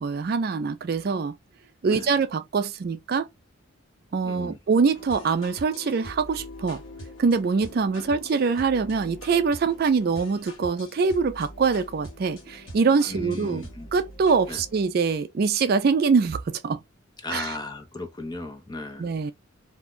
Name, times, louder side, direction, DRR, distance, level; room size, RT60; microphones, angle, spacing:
voice 1, 0.0-1.4 1.8-3.3 4.1-6.8 7.2-13.6 13.9-16.8 17.3-17.6 19.0-19.3, right 5 dB, 50° right, 0.3 m, -24 dB
voice 2, 4.2-4.6 13.0-13.9 14.5-14.6 17.2-19.1, left 2 dB, 20° left, 0.5 m, -36 dB
sound 1, 4.9-14.9, equal, 75° left, 1.1 m, -43 dB
2.5 x 2.3 x 3.5 m
head